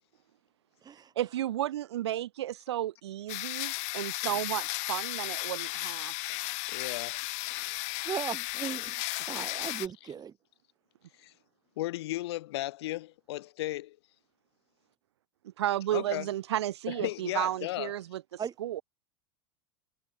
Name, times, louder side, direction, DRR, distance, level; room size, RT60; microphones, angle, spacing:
voice 1, 1.1-6.1 15.4-18.8, right 13 dB, 80° right, 1.7 m, -33 dB
sound 1, 3.3-9.9, left 27 dB, 55° left, 5.0 m, -35 dB
voice 2, 6.7-7.2 11.2-11.3 11.8-14.0 15.9-16.3 16.9-17.9, left 17 dB, 75° left, 4.5 m, -35 dB
voice 3, 7.5-10.3 18.4-18.5, right 8 dB, 30° right, 3.6 m, -38 dB
hypercardioid pair, 100°, 14 cm